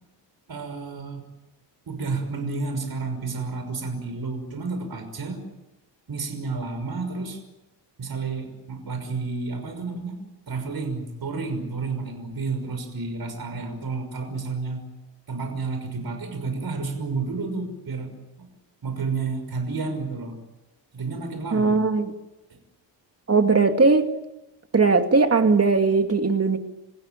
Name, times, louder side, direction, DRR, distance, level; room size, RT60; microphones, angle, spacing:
voice 1, 0.5-1.2 1.9-5.4 6.1-7.4 8.0-10.2 10.5-14.8 15.3-18.5 18.8-20.4 20.9-21.8 22.5-22.6, right 4 dB, 55° right, 6.1 m, -31 dB
voice 2, 21.5-22.1 23.3-24.1 24.7-26.6, right 4 dB, 35° right, 2.5 m, -19 dB
30.0 x 16.0 x 9.2 m
wide cardioid pair, 105°, 44 cm